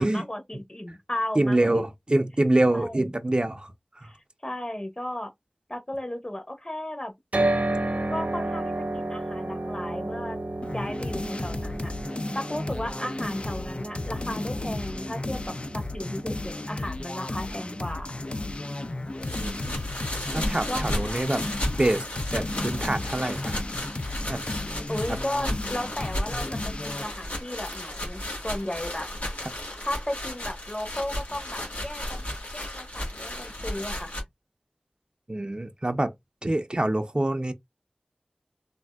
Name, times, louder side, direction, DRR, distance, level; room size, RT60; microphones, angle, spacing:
voice 1, 0.0-1.8 2.7-3.1 4.0-4.2 4.4-5.3 5.7-7.1 8.1-10.4 10.7-11.9 12.3-15.4 15.7-18.2 20.6-20.8 24.9-29.1 29.8-32.3 32.5-34.1, left 1 dB, 30° left, 0.9 m, -35 dB
voice 2, 1.4-4.1 19.4-19.7 20.3-21.4 21.8-22.0 22.3-23.6 24.3-24.4 25.1-25.2 35.3-36.1 36.4-37.5, right 1 dB, 35° right, 0.4 m, -25 dB
sound 1, 7.3-21.4, right 2 dB, 75° right, 0.8 m, -33 dB
sound 2, 10.6-27.1, left 2 dB, 45° left, 0.3 m, -34 dB
sound 3, 19.2-34.2, left 1 dB, 85° left, 1.4 m, -34 dB
3.4 x 2.5 x 2.2 m
wide cardioid pair, 40°, 3 cm